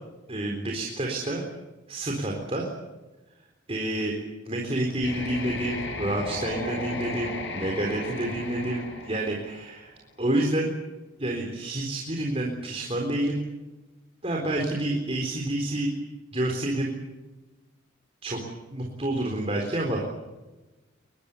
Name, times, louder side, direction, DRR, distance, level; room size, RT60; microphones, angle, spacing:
voice 1, 0.3-1.4 1.9-2.7 3.7-4.1 4.5-9.9 10.2-10.7 11.2-13.4 14.2-15.9 16.3-16.9 18.2-18.4 18.7-20.0, right 1 dB, 30° right, 0 dB, 4.0 m, -28 dB
sound 1, 5.0-9.9, left 2 dB, 65° left, 7.3 m, -35 dB
24.5 x 21.0 x 8.6 m, 1.1 s
head